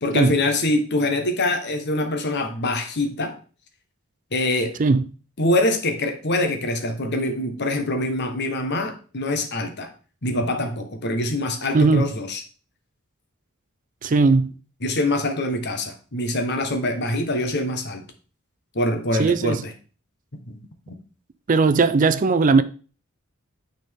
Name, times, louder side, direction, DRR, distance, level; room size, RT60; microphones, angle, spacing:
voice 1, 0.0-3.4 4.3-4.7 5.4-9.9 10.2-12.4 14.8-18.1 18.7-19.7 20.3-20.6 20.9-21.0, left 1 dB, 55° left, 1.2 m, -24 dB
voice 2, 11.7-12.0 14.0-14.5 19.2-19.6 21.5-22.6, right 4 dB, 40° right, 0.4 m, -18 dB
9.5 x 4.2 x 3.7 m
head